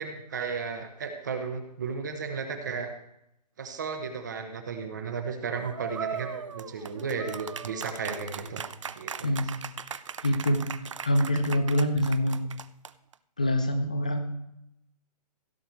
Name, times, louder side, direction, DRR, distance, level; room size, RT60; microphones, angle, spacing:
voice 1, 0.0-2.9 3.6-8.6 9.0-9.3, right 5 dB, 25° right, 6 dB, 1.0 m, -34 dB
sound 1, 5.7-13.1, right 7 dB, 50° right, 0.5 m, -38 dB
voice 2, 9.2-9.6 9.9-10.7 11.0-12.4 13.4-14.3, equal, 10° left, 7 dB, 0.4 m, -25 dB
16.0 x 7.0 x 4.6 m, 0.80 s
hypercardioid pair, 175°, 21 cm